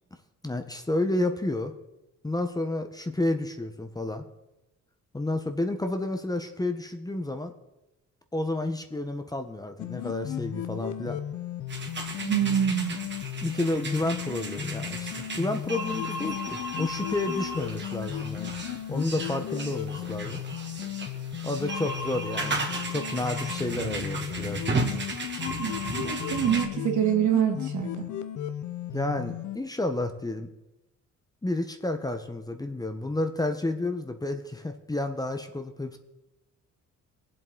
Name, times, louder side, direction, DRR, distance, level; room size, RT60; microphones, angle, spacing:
voice 1, 0.4-1.7 2.2-4.2 5.1-7.5 8.3-11.2 13.4-18.5 18.9-20.4 21.4-22.6 22.9-24.8 28.9-30.5 31.4-36.0, left 2 dB, 10° left, 7 dB, 1.0 m, -30 dB
sound 1, 9.8-29.6, left 11 dB, 75° left, 0.9 m, -35 dB
sound 2, 11.7-26.7, right 2 dB, 35° right, 2.1 m, -35 dB
voice 2, 12.2-13.0 25.6-28.1, right 9 dB, 75° right, 1 dB, 2.6 m, -26 dB
22.0 x 7.9 x 3.9 m, 0.96 s
cardioid pair, 90°, 30 cm